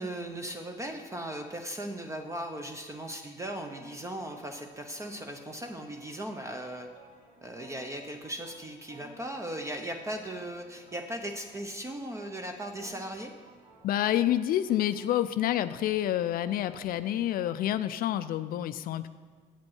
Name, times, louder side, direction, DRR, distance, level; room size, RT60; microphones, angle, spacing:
voice 1, 0.0-6.9 7.4-13.3, right 1 dB, 15° right, 5 dB, 0.6 m, -38 dB
sound 1, 3.6-17.6, right 1 dB, 75° right, 2.6 m, -57 dB
voice 2, 13.8-19.1, left 12 dB, 60° left, 13 dB, 0.4 m, -28 dB
8.4 x 5.2 x 7.2 m, 1.5 s
cardioid pair, 110°, 17 cm